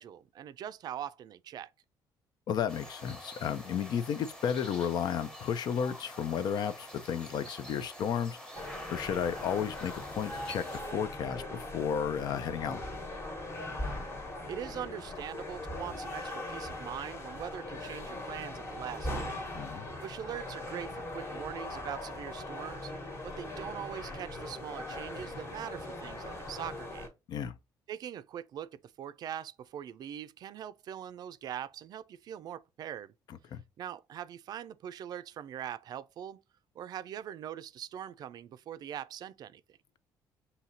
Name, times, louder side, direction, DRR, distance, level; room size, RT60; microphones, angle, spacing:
voice 1, 0.0-1.7 14.5-19.4 20.0-22.9 23.2-27.1 27.9-33.1 33.8-36.4 36.8-39.6, right 10 dB, 55° right, 0.4 m, -42 dB
voice 2, 2.5-8.4 8.9-12.8 19.5-19.9 27.3-27.5 33.3-33.6, left 8 dB, 60° left, 0.5 m, -33 dB
sound 1, 2.7-10.8, equal, 10° left, 1.0 m, -47 dB
sound 2, 8.5-27.1, left 1 dB, 35° left, 1.3 m, -40 dB
5.6 x 2.8 x 2.7 m
cardioid pair, 120°, 8 cm